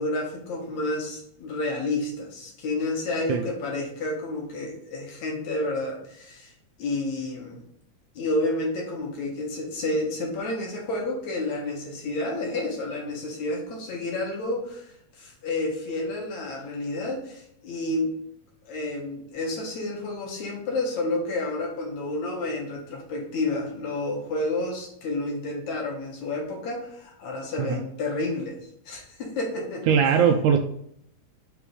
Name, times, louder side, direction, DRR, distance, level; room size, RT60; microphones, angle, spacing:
voice 1, 0.0-6.5 6.8-7.6 8.2-18.1 18.7-28.6 28.9-29.9, left 2 dB, 60° left, 0 dB, 2.5 m, -30 dB
voice 2, 29.9-30.6, right 7 dB, 80° right, 5 dB, 1.8 m, -20 dB
5.9 x 4.9 x 4.9 m, 0.71 s
omnidirectional pair, 3.8 m